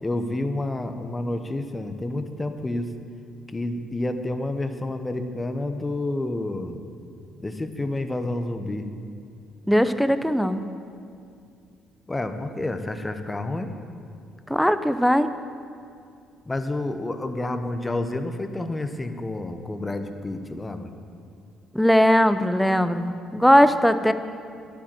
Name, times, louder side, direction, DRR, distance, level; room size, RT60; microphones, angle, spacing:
voice 1, 0.0-2.9 3.5-6.8 7.4-8.9 12.1-13.7 16.5-20.9, left 2 dB, 20° left, 7 dB, 1.1 m, -29 dB
voice 2, 9.7-10.6 14.5-15.3 21.7-24.1, equal, ahead, 11 dB, 0.7 m, -19 dB
11.0 x 8.7 x 7.7 m, 2.4 s
supercardioid pair, 70°, 0 cm